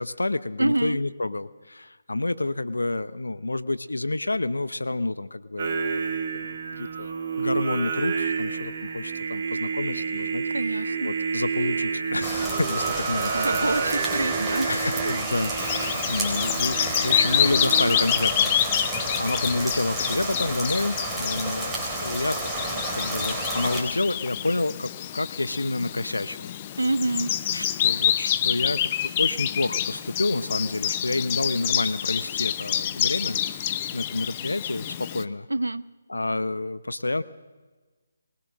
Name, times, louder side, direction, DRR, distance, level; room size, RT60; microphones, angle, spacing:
voice 1, 0.0-14.1 14.7-18.5 18.8-22.4 22.7-26.5 27.5-33.4 33.9-35.5 36.1-37.2, left 2 dB, 85° left, 15 dB, 0.8 m, -29 dB
voice 2, 0.6-1.0 10.5-11.1 13.3-14.7 26.8-27.3 35.5-35.8, right 2 dB, 90° right, 17 dB, 0.5 m, -26 dB
Singing, 5.6-18.0, right 5 dB, 45° right, 2.6 m, -29 dB
sound 1, 12.2-23.8, right 1 dB, ahead, 4.0 m, -31 dB
Bird vocalization bird call bird song, 15.6-35.2, left 11 dB, 30° left, 0.7 m, -27 dB
21.0 x 19.5 x 6.4 m, 1.3 s
figure-of-eight pair, 150°, 0 cm